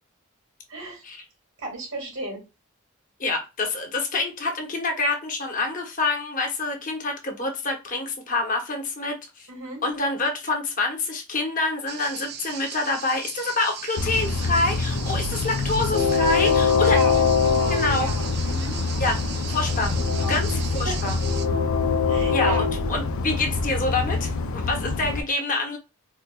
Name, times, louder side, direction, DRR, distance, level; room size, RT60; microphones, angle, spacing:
voice 1, 0.7-1.0 1.6-2.4 9.5-9.8 15.8-16.5 16.9-18.8 19.9-20.6 20.9-21.1 22.1-22.7, right 2 dB, 80° right, 1.8 m, -34 dB
voice 2, 3.2-9.5 9.8-17.0 17.7-18.1 19.0-19.2 19.5-19.9 20.3-21.1 22.3-25.8, left 2 dB, 40° left, 0.8 m, -27 dB
sound 1, 11.9-21.5, right 8 dB, 50° right, 0.4 m, -38 dB
Train, 14.0-25.2, left 4 dB, 85° left, 0.4 m, -24 dB
4.4 x 2.2 x 2.2 m
head